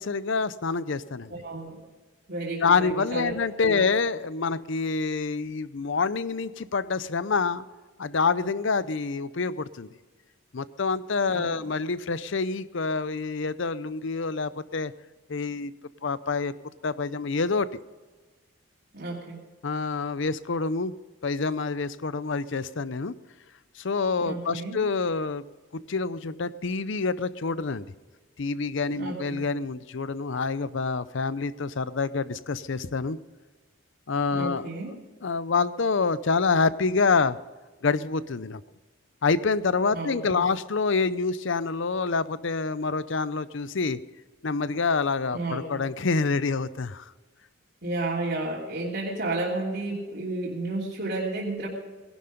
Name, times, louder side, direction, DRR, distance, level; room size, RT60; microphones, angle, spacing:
voice 1, 0.0-1.3 2.6-7.6 8.0-9.9 10.5-14.9 15.3-15.7 16.0-16.5 16.8-17.7 19.6-20.9 21.2-23.1 23.8-25.4 25.7-27.9 28.4-33.2 34.1-34.7 35.2-37.4 37.8-38.6 39.2-44.0 44.4-47.0, left 4 dB, 60° left, 16 dB, 0.6 m, -27 dB
voice 2, 1.3-1.8 2.3-3.8 11.3-11.7 18.9-19.4 24.2-24.8 29.0-29.4 34.3-34.9 39.9-40.4 45.3-45.8 47.8-51.7, right 2 dB, 50° right, -7 dB, 3.0 m, -32 dB
19.0 x 11.5 x 5.2 m, 1.3 s
head